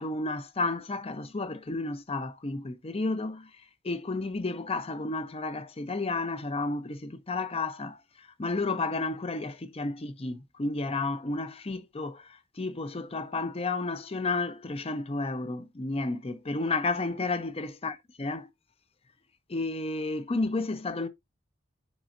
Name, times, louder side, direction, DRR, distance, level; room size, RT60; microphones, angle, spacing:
voice 1, 0.0-3.5 3.8-18.5 19.5-21.1, left 3 dB, 30° left, 0.7 m, -32 dB
10.5 x 4.3 x 2.5 m
head